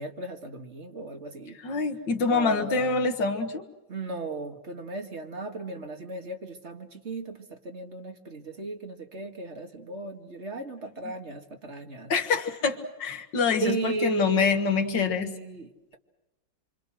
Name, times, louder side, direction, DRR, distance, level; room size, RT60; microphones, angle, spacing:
voice 1, 0.0-1.6 2.3-3.1 3.9-12.1 13.6-16.0, right 3 dB, 35° right, 4 dB, 2.1 m, -35 dB
voice 2, 1.6-3.7 11.0-11.1 12.1-15.3, left 5 dB, 75° left, 7 dB, 2.2 m, -26 dB
27.0 x 26.0 x 6.3 m, 1.0 s
omnidirectional pair, 2.0 m